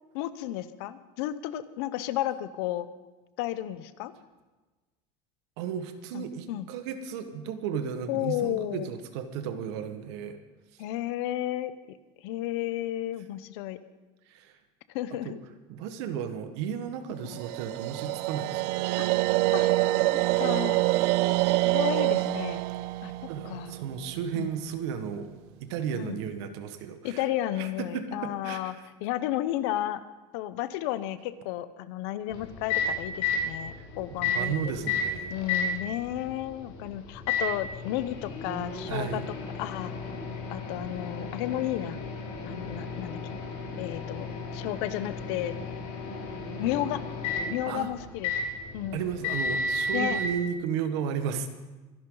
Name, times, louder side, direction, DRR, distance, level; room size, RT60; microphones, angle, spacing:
voice 1, 0.1-2.9 3.4-4.1 6.1-6.7 8.1-8.9 10.8-12.0 12.2-13.8 14.9-15.4 17.3-17.4 19.0-19.1 19.5-19.7 20.4-20.8 21.7-22.6 23.0-23.1 23.4-23.7 24.3-24.5 26.0-26.2 27.0-28.7 29.0-30.0 30.3-34.7 35.3-39.9 40.5-42.0 42.5-43.3 43.8-45.6 46.6-47.0 47.5-48.4 48.7-49.0 49.9-50.2, left 13 dB, 75° left, 13 dB, 0.9 m, -32 dB
voice 2, 5.6-10.4 14.3-14.5 15.2-15.3 15.7-18.8 23.3-25.3 25.6-27.2 27.6-28.8 34.2-35.4 38.9-39.2 47.7-47.9 48.9-51.5, right 7 dB, 80° right, 8 dB, 1.7 m, -34 dB
sound 1, 17.3-24.5, right 19 dB, 65° right, 0.4 m, -26 dB
Microwave oven, 32.3-50.3, left 3 dB, 60° left, 5.1 m, -33 dB
24.5 x 11.5 x 4.0 m, 1.2 s
cardioid pair, 175°, 14 cm